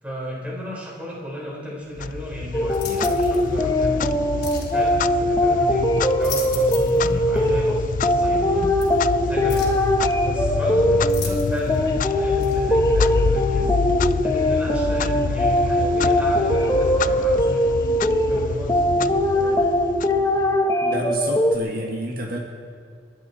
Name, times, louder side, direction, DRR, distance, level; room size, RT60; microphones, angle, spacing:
voice 1, 0.0-4.1 4.7-8.7 9.2-9.7 10.2-13.7 14.2-17.7 18.3-19.6, equal, 10° right, -5 dB, 4.0 m, -33 dB
Clock, 2.0-20.7, left 5 dB, 45° left, 0.3 m, -28 dB
sound 1, 2.5-21.6, equal, 20° left, 0.8 m, -21 dB
sound 2, 2.7-3.4 4.4-4.7 6.0-7.0 7.4-7.5 8.8-8.9 9.5-9.8 11.1-11.8 12.4-12.6, left 7 dB, 65° left, 3.1 m, -35 dB
voice 2, 20.8-22.4, right 1 dB, 55° right, 0 dB, 1.7 m, -29 dB
30.0 x 10.5 x 4.2 m, 2.2 s
head